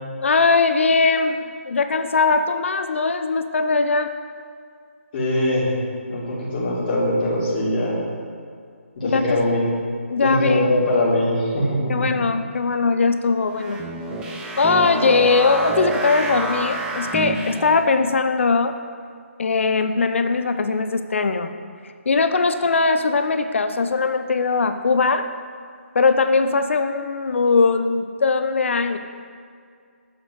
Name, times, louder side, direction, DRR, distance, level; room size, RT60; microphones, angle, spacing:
voice 1, 0.2-4.1 9.0-9.4 10.1-10.7 11.9-13.8 14.6-18.8 19.4-21.5 22.1-25.3 25.9-29.0, left 4 dB, 60° left, 9 dB, 0.6 m, -20 dB
voice 2, 5.1-5.7 6.1-8.0 9.0-9.7 10.2-12.3, left 1 dB, 40° left, -7 dB, 2.5 m, -22 dB
sound 1, 13.5-17.9, right 3 dB, 10° right, 0.9 m, -28 dB
8.1 x 6.2 x 6.3 m, 2.2 s
figure-of-eight pair, 150°, 7 cm